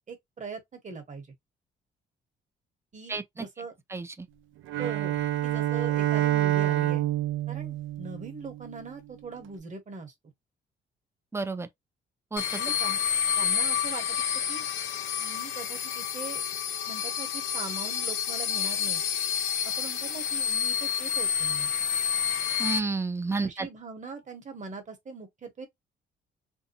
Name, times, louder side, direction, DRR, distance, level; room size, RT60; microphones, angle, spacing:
voice 1, 0.1-1.3 2.9-3.8 4.8-7.1 7.5-10.1 12.5-13.0 13.4-14.6 15.2-16.4 16.9-19.0 19.6-21.7 23.4-25.7, right 4 dB, 40° right, 1.0 m, -41 dB
voice 2, 3.1-3.5 3.9-4.1 11.3-11.7 12.3-12.4 22.6-23.7, right 4 dB, 15° right, 0.4 m, -30 dB
Bowed string instrument, 4.7-8.9, right 14 dB, 80° right, 0.4 m, -27 dB
sound 1, 12.4-22.8, left 8 dB, 70° left, 0.4 m, -29 dB
2.7 x 2.2 x 2.7 m
cardioid pair, 90°, 20 cm